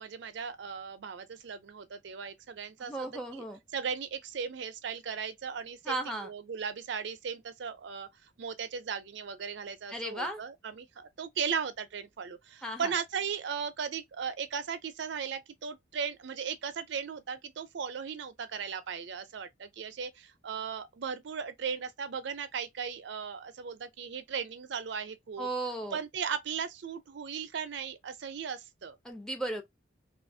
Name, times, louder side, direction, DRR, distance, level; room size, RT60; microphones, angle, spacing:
voice 1, 0.0-3.4 3.7-8.1 8.4-25.5 25.9-29.0, right 6 dB, 65° right, 0.4 m, -37 dB
voice 2, 2.8-3.6 5.8-6.3 9.9-10.4 12.6-12.9 25.4-26.0 29.0-29.6, right 2 dB, 5° left, 0.5 m, -35 dB
2.7 x 2.4 x 2.6 m
head